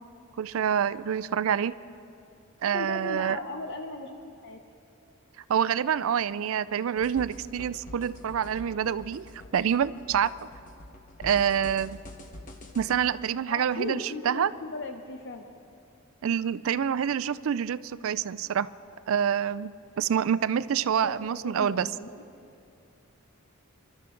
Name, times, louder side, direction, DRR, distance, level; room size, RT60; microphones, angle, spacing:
voice 1, 0.4-1.7 2.6-3.4 5.5-9.2 9.5-10.3 11.2-12.0 12.7-14.5 16.2-18.7 19.1-21.9, right 8 dB, 65° right, 16 dB, 0.4 m, -27 dB
voice 2, 2.6-4.6 13.5-15.4 21.0-22.2, left 2 dB, 55° left, 5 dB, 0.8 m, -37 dB
sound 1, 7.0-12.9, left 1 dB, 35° left, 1.2 m, -45 dB
27.5 x 12.5 x 3.8 m, 2.6 s
head